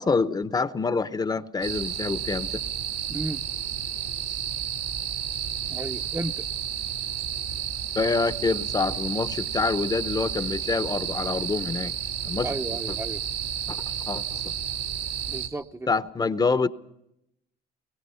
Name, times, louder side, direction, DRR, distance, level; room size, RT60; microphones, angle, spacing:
voice 1, 0.0-2.5 8.0-11.9 12.2-12.5 13.7-14.4 15.9-16.7, left 4 dB, 25° left, 0.7 m, -26 dB
sound 1, 1.6-15.5, right 9 dB, 80° right, 3.1 m, -31 dB
voice 2, 3.1-3.4 5.7-6.5 12.4-13.2 15.3-15.9, right 2 dB, 15° right, 0.7 m, -33 dB
23.5 x 21.0 x 5.6 m
cardioid pair, 110°, 17 cm